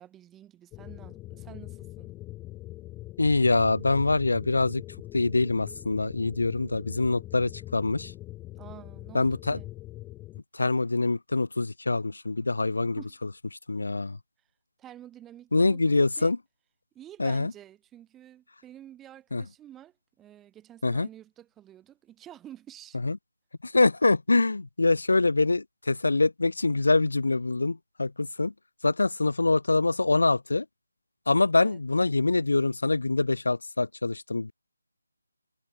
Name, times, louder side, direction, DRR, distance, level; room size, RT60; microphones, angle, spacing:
voice 1, 0.0-2.1 8.6-9.7 12.8-13.2 14.8-16.3 16.9-23.0 31.5-31.8, right 11 dB, 10° right, 5.9 m, -49 dB
sound 1, 0.7-10.4, left 17 dB, 10° left, 2.3 m, -42 dB
voice 2, 3.2-4.8 5.1-8.1 9.1-9.6 10.5-13.0 13.7-14.2 15.5-16.4 17.2-17.5 19.3-19.4 20.8-21.1 23.0-23.2 23.6-28.5 28.8-30.6 31.3-34.5, left 3 dB, 65° left, 1.1 m, -24 dB
figure-of-eight pair, 155°, 0 cm